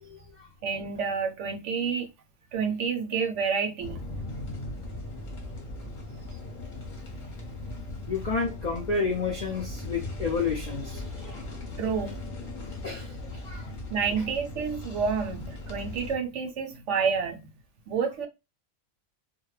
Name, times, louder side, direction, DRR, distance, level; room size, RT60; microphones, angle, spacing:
voice 1, 0.0-0.5 8.1-11.4 12.7-13.7, left 4 dB, 60° left, 0.4 m, -31 dB
voice 2, 0.6-2.1 2.5-4.0 11.8-12.2 13.9-17.5 17.9-18.3, right 6 dB, 70° right, 0.8 m, -29 dB
sound 1, 3.8-16.2, left 2 dB, 45° left, 0.8 m, -38 dB
2.2 x 2.1 x 3.0 m
omnidirectional pair, 1.4 m